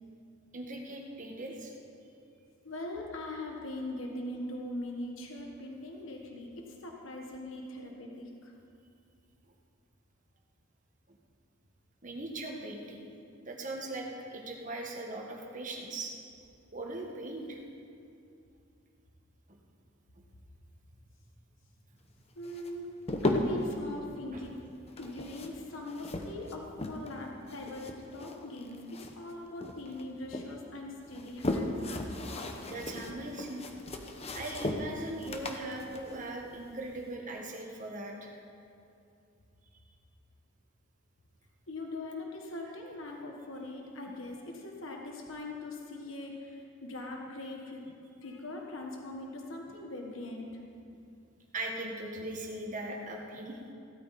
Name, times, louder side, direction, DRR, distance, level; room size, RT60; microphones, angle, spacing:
voice 1, 0.5-1.7 11.1-11.2 12.0-13.1 13.4-16.1 16.7-17.6 24.3-24.4 32.7-33.6 34.3-38.3 51.5-53.6, right 2 dB, 40° right, 0 dB, 1.6 m, -39 dB
voice 2, 2.6-8.5 22.4-22.9 23.2-24.6 25.0-31.7 41.7-47.9 48.2-50.6, left 2 dB, 70° left, 0 dB, 1.4 m, -41 dB
sound 1, 22.4-23.7 24.9-27.2 27.5-29.3 29.6-30.5 31.0-37.1, left 1 dB, 30° left, 0.9 m, -36 dB
16.0 x 13.0 x 4.2 m, 2.6 s
head